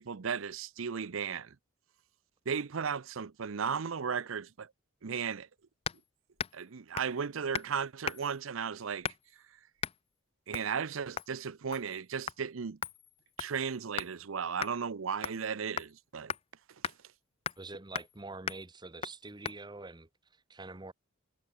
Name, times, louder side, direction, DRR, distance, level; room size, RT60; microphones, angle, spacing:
voice 1, 0.0-1.6 2.5-4.7 5.0-5.5 6.5-9.1 10.5-12.8 13.4-16.3, right 6 dB, 75° right, 0.6 m, -35 dB
sound 1, 5.9-6.1 6.4-6.6 7.0-7.2 7.5-7.7 8.1-8.4 9.0-9.4 9.8-10.0 10.5-10.7 11.2-11.4 11.7-12.0 12.3-12.4 12.8-14.2 14.6-14.7 15.2-15.5 15.8-15.9 16.3-16.4 16.8-17.0 17.5-17.7 18.0-18.2 18.5-18.6 19.0-19.2 19.5-19.6, left 7 dB, 30° left, 0.4 m, -38 dB
voice 2, 17.6-20.9, right 3 dB, 20° right, 1.1 m, -46 dB
head